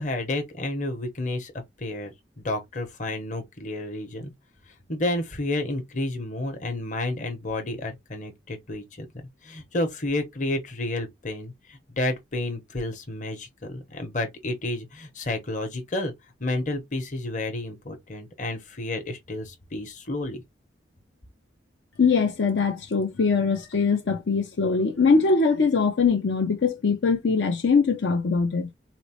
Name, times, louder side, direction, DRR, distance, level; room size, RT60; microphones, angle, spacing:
voice 1, 0.0-1.5 1.8-2.1 2.4-4.3 4.9-9.1 9.4-16.1 16.4-20.4, left 2 dB, 40° left, 0.9 m, -30 dB
voice 2, 22.0-28.7, left 4 dB, 75° left, 0.6 m, -22 dB
4.2 x 2.0 x 2.9 m
head